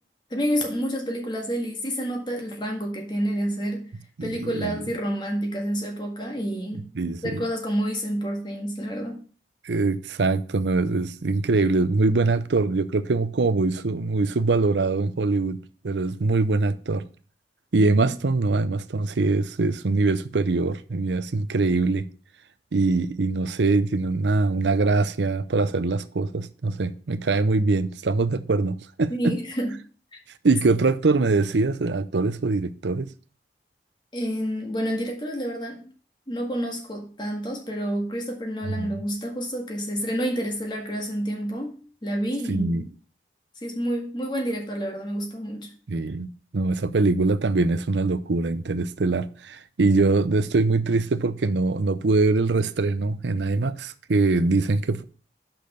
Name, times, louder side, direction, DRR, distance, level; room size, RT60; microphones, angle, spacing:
voice 1, 0.3-3.8 4.2-6.9 7.2-9.2 29.1-29.7 34.1-35.9 36.3-42.7 43.6-45.7, equal, 25° left, 1.8 m, -29 dB
voice 2, 4.2-4.8 6.9-7.5 9.6-17.0 17.7-22.1 22.7-29.4 30.4-33.1 38.7-39.0 42.5-42.9 45.9-55.0, right 3 dB, 90° right, 0.6 m, -23 dB
6.0 x 5.3 x 6.7 m
head